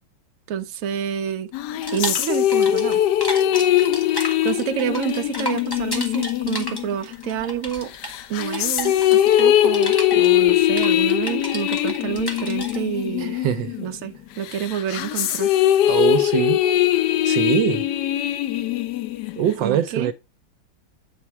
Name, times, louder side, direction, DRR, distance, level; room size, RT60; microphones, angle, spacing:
voice 1, 0.5-1.5 1.9-3.0 4.4-7.9 8.3-13.3 13.8-15.6 19.6-20.1, right 9 dB, 60° right, 0.9 m, -28 dB
sound 1, 1.5-7.5 8.0-14.0 14.4-19.5, left 12 dB, 75° left, 1.0 m, -21 dB
sound 2, 1.8-3.0 3.2-12.8, left 1 dB, 15° left, 1.2 m, -32 dB
voice 2, 13.2-13.8 15.9-16.6 17.2-17.9 19.4-20.1, right 10 dB, 75° right, 1.3 m, -23 dB
8.8 x 4.2 x 4.7 m
omnidirectional pair, 2.1 m